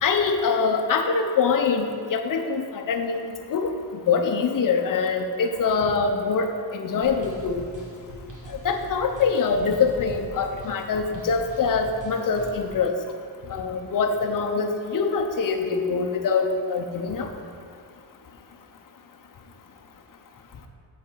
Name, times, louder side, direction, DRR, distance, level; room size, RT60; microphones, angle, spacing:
voice 1, 0.0-3.2 3.5-3.7 4.1-7.7 8.5-13.0 13.5-17.3, left 5 dB, 45° left, 5 dB, 0.7 m, -24 dB
sound 1, 7.0-12.7, right 1 dB, 45° right, 1.3 m, -42 dB
7.9 x 4.2 x 6.8 m, 2.3 s
wide cardioid pair, 165°, 44 cm